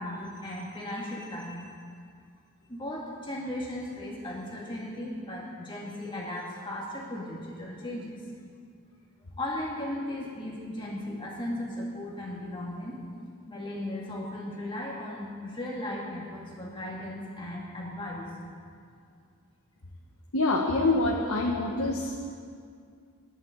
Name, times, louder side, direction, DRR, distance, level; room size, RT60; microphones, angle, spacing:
voice 1, 0.0-1.7 2.7-8.2 9.4-13.0 13.5-18.3, left 1 dB, 20° left, -4 dB, 2.3 m, -36 dB
voice 2, 20.3-22.1, left 2 dB, 75° left, -1 dB, 1.3 m, -25 dB
21.5 x 11.0 x 4.0 m, 2.2 s
head